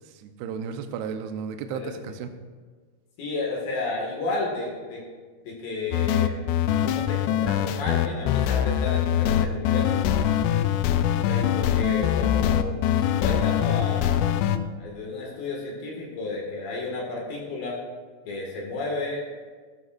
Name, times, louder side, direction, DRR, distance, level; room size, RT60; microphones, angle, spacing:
voice 1, 0.1-2.3, right 6 dB, 80° right, 6 dB, 2.4 m, -34 dB
voice 2, 1.7-2.2 3.2-5.0 5.4-6.4 6.8-10.2 11.1-14.4 14.8-17.8 18.2-19.2, left 3 dB, 55° left, -2 dB, 3.4 m, -32 dB
sound 1, 5.9-14.6, left 10 dB, 85° left, 2.4 m, -23 dB
16.5 x 13.0 x 2.6 m, 1.5 s
omnidirectional pair, 5.4 m